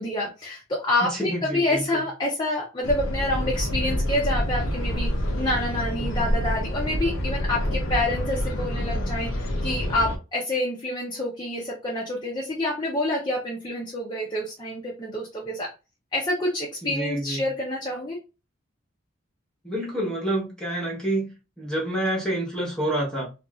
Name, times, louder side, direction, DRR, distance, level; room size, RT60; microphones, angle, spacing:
voice 1, 0.0-5.1 5.4-15.7 16.1-18.2, left 1 dB, 20° left, 0.6 m, -27 dB
voice 2, 1.1-2.0 16.8-17.4 19.6-23.3, right 1 dB, 5° left, 0.9 m, -28 dB
sound 1, 2.8-10.2, equal, 85° left, 0.6 m, -27 dB
3.0 x 2.4 x 2.3 m
head